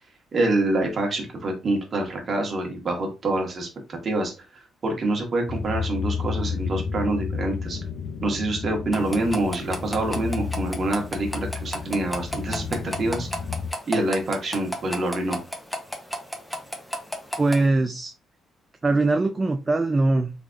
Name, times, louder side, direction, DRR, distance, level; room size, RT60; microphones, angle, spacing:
voice 1, 0.3-7.8 8.2-13.3 13.9-15.4, right 2 dB, 45° right, 2 dB, 1.4 m, -26 dB
sound 1, 5.5-13.7, left 5 dB, 70° left, 0.5 m, -32 dB
sound 2, 8.9-17.6, equal, 5° left, 0.9 m, -34 dB
voice 2, 17.4-18.1 18.8-20.3, right 2 dB, 25° right, 6 dB, 0.4 m, -21 dB
3.6 x 3.2 x 2.5 m, 0.28 s
cardioid pair, 90°, 0 cm